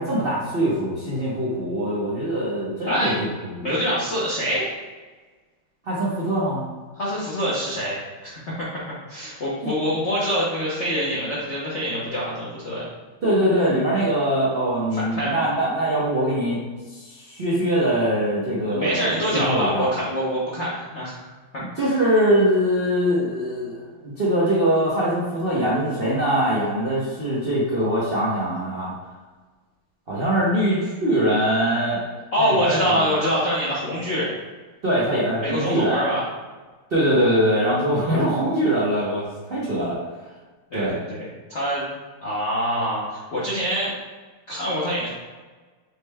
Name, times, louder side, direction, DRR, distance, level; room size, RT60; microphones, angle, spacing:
voice 1, 0.0-3.1 3.5-3.6 5.8-6.7 9.6-9.7 13.2-16.6 16.9-19.9 21.8-28.9 30.1-32.0 32.4-33.1 34.8-36.0 36.9-40.0 40.7-40.9, right 1 dB, 70° right, -7 dB, 0.5 m, -22 dB
voice 2, 2.9-3.2 3.6-4.7 6.9-8.7 9.1-12.9 14.9-15.5 18.7-21.3 21.5-21.9 32.3-34.3 35.4-36.2 37.8-38.3 40.7-41.9 42.2-43.9 44.5-45.1, equal, 65° left, -7 dB, 0.6 m, -25 dB
6.2 x 2.1 x 3.3 m, 1.3 s
omnidirectional pair, 2.3 m